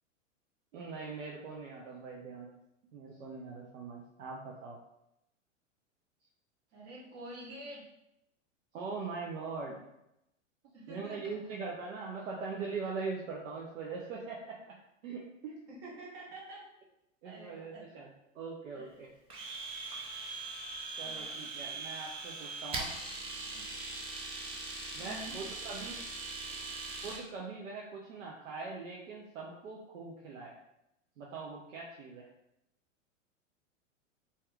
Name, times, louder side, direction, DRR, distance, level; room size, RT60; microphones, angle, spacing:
voice 1, 0.7-2.5 2.9-4.8 8.7-9.8 10.9-14.8 15.0-15.6 17.2-18.1 18.3-19.1 21.0-22.9 24.9-26.0 27.0-30.5 31.2-32.3, right 4 dB, 80° right, -2 dB, 0.7 m, -41 dB
voice 2, 6.7-7.8 10.7-11.6 15.7-16.6 17.2-17.9 18.7-19.0 21.0-21.4 23.5-23.7 25.0-25.4, right 1 dB, 55° right, -4 dB, 1.4 m, -48 dB
Domestic sounds home sounds, 19.3-27.2, right 3 dB, 15° right, 0.4 m, -41 dB
2.8 x 2.3 x 3.4 m, 0.84 s
hypercardioid pair, 110°, 38 cm